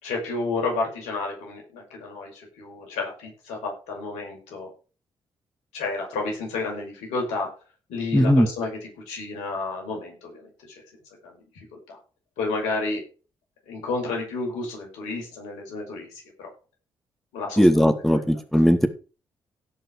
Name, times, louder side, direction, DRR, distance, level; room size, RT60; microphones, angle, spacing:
voice 1, 0.0-4.7 5.7-7.5 7.9-10.5 11.2-11.4 11.9-12.0 12.4-13.0 13.7-16.1 16.4-16.5 17.3-18.4, left 3 dB, 80° left, 0 dB, 5.9 m, -31 dB
voice 2, 8.1-8.5 17.6-18.9, equal, ahead, 8 dB, 2.4 m, -18 dB
17.0 x 6.1 x 4.8 m, 0.34 s
hypercardioid pair, 40°, 12 cm